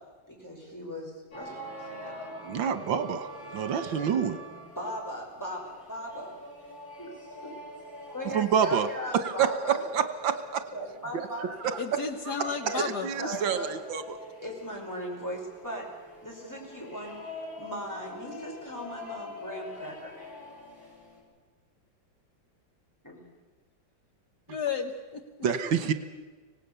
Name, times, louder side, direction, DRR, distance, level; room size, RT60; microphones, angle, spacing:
voice 1, 0.3-1.6 2.0-2.3 4.8-6.4 7.0-7.1 7.4-7.5 8.1-9.8 10.7-11.4 12.6-12.9 13.2-13.7 14.4-15.9 16.2-17.1 17.6-20.1 23.0-23.2, equal, 10° left, -1 dB, 5.0 m, -38 dB
sound 1, 1.3-21.2, left 1 dB, 80° left, 6.4 m, -45 dB
voice 2, 2.4-4.4 8.3-8.9 9.2-10.6 11.1-11.8 12.3-14.2 25.4-25.9, right 7 dB, 85° right, 11 dB, 1.9 m, -28 dB
voice 3, 11.8-13.1 24.5-25.3, left 6 dB, 60° left, 7 dB, 1.6 m, -32 dB
25.0 x 18.0 x 6.9 m, 1.3 s
omnidirectional pair, 2.1 m